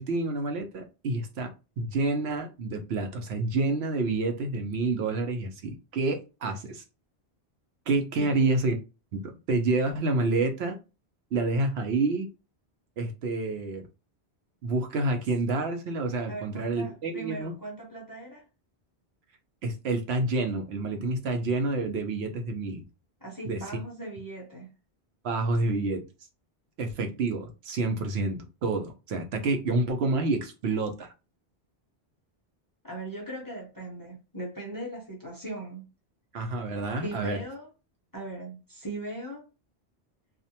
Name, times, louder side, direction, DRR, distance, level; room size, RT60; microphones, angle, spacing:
voice 1, 0.0-6.8 7.9-8.8 9.1-10.8 11.3-12.3 13.0-13.9 14.6-17.5 19.6-22.8 23.5-23.6 25.2-26.0 26.8-31.1 36.3-37.4, right 3 dB, 75° right, 0.9 m, -28 dB
voice 2, 8.2-8.5 16.3-18.4 23.2-24.7 32.8-35.9 37.0-37.7 38.1-39.5, right 2 dB, 25° left, 0.5 m, -39 dB
2.5 x 2.1 x 2.7 m
omnidirectional pair, 1.1 m